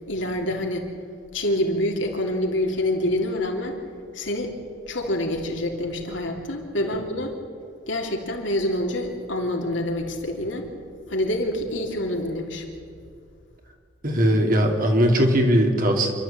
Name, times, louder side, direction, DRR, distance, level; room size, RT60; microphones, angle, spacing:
voice 1, 0.1-0.9 1.3-3.8 4.1-4.5 4.9-7.3 7.9-10.7 11.1-12.6, left 1 dB, 70° left, 1 dB, 3.2 m, -26 dB
voice 2, 14.0-16.1, equal, 45° right, 3 dB, 2.7 m, -19 dB
27.0 x 12.5 x 8.7 m, 2.3 s
head